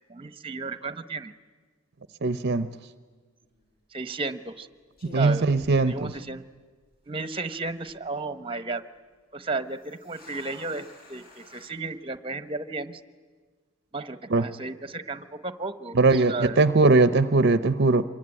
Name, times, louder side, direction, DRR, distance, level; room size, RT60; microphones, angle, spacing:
voice 1, 0.1-1.3 3.9-4.7 5.1-5.5 5.8-6.4 7.1-8.8 9.3-13.0 13.9-16.6, right 3 dB, 25° right, 12 dB, 1.0 m, -33 dB
voice 2, 2.2-2.7 5.1-6.1 14.3-14.4 15.9-18.0, right 3 dB, 50° right, 13 dB, 0.7 m, -20 dB
sound 1, 3.4-3.7 4.5-4.6 5.0-6.5 6.8-6.9 7.5-7.9 9.7-11.7, left 1 dB, 45° left, 7.4 m, -50 dB
26.5 x 23.0 x 9.8 m, 1.5 s
head